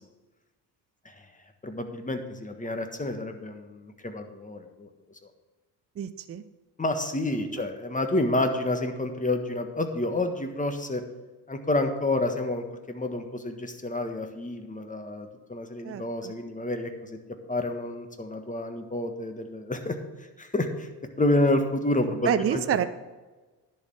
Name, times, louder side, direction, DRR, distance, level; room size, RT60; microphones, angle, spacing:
voice 1, 1.6-4.9 6.8-11.0 11.5-17.2 17.5-20.0 20.4-20.9 21.2-22.6, left 2 dB, 15° left, 6 dB, 1.5 m, -29 dB
voice 2, 6.0-6.4 7.5-7.7 15.8-16.3 22.3-22.8, right 9 dB, 30° right, 11 dB, 0.6 m, -28 dB
10.5 x 5.7 x 6.4 m, 1.2 s
hypercardioid pair, 50°, 49 cm